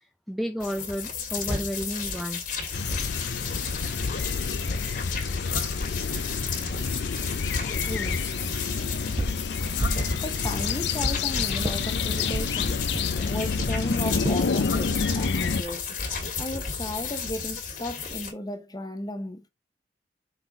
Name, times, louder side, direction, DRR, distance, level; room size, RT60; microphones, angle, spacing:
voice 1, 0.0-2.7 3.1-3.3, equal, ahead, 0.4 m, -33 dB
sound 1, 0.6-18.3, left 5 dB, 50° left, 1.8 m, -33 dB
sound 2, 2.7-15.6, left 5 dB, 65° left, 0.5 m, -29 dB
voice 2, 7.8-8.3 10.2-12.9 13.2-15.9 16.4-19.5, left 1 dB, 20° left, 0.9 m, -35 dB
sound 3, 9.2-9.4 9.8-10.1 10.4-11.2 11.6-11.8 12.3-12.5 12.9-13.1 13.6-13.8 14.2-14.4 15.0-15.3, right 1 dB, 30° right, 1.0 m, -30 dB
5.8 x 4.2 x 3.8 m
head